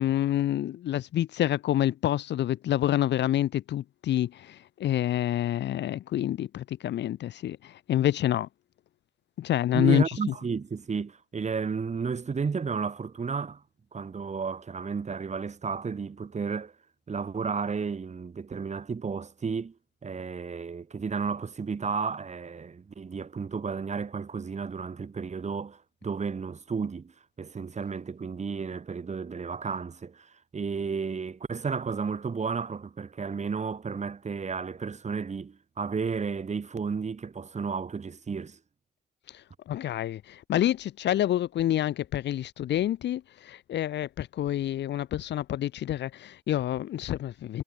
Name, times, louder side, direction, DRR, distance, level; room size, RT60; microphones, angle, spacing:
voice 1, 0.0-8.5 9.4-10.0 39.7-47.6, left 12 dB, 70° left, 0.7 m, -27 dB
voice 2, 9.7-13.6 13.9-16.7 17.1-19.7 20.0-27.1 27.4-38.6, right 5 dB, 40° right, 5.0 m, -32 dB
cardioid pair, 100°, 19 cm